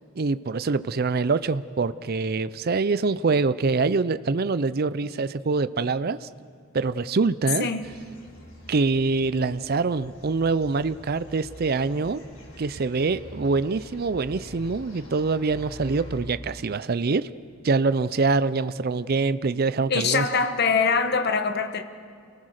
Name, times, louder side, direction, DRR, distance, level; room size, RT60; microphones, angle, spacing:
voice 1, 0.2-6.3 6.7-7.7 8.7-12.2 12.6-17.3 17.6-20.3, right 4 dB, 50° right, 0.5 m, -24 dB
sound 1, 7.8-16.2, left 1 dB, 80° left, 4.8 m, -46 dB
voice 2, 19.9-21.8, left 5 dB, 50° left, 1.3 m, -23 dB
28.0 x 19.5 x 6.5 m
head